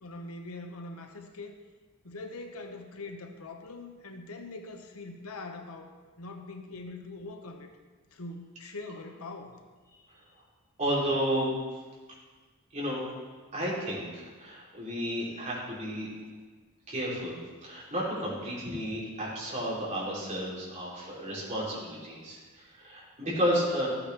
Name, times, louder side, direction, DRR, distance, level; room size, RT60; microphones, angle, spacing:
voice 1, 0.0-1.5 2.0-7.7 8.1-9.5, left 2 dB, 90° left, 5 dB, 1.0 m, -42 dB
voice 2, 10.8-11.5 12.7-13.0 13.5-16.1 16.9-23.9, equal, 35° right, -6 dB, 3.2 m, -32 dB
13.5 x 8.6 x 3.4 m, 1.4 s
head